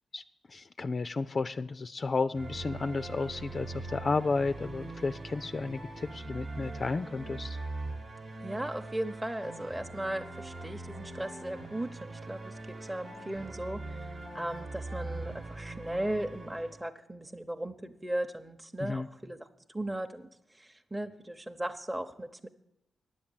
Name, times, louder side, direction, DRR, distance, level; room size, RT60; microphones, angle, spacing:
voice 1, 0.5-7.6 18.8-19.1, left 3 dB, 50° left, 11 dB, 0.3 m, -32 dB
sound 1, 2.3-16.9, right 2 dB, 55° right, 1.1 m, -42 dB
voice 2, 8.4-22.5, right 1 dB, 15° right, 4 dB, 0.7 m, -37 dB
10.0 x 7.2 x 8.8 m, 0.87 s
supercardioid pair, 45°, 0 cm